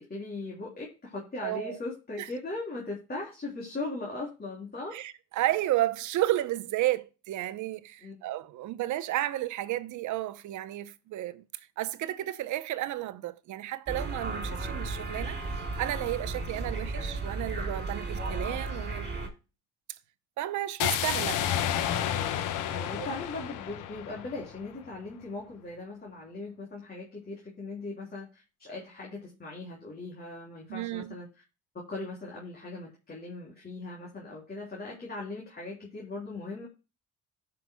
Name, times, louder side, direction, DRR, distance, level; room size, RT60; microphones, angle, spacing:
voice 1, 0.0-4.9 8.0-8.1 14.5-14.6 22.5-31.3 31.9-36.7, left 2 dB, 30° left, 3.3 m, -39 dB
voice 2, 1.4-1.8 2.2-2.3 4.9-11.4 11.8-15.4 15.8-19.3 20.4-21.5 23.0-23.1 30.7-31.2, right 14 dB, 70° right, 0.8 m, -32 dB
sound 1, 13.9-19.3, right 3 dB, 35° right, 3.4 m, -34 dB
sound 2, 20.8-24.8, left 10 dB, 80° left, 1.1 m, -31 dB
15.5 x 5.9 x 2.2 m
cardioid pair, 90°, 31 cm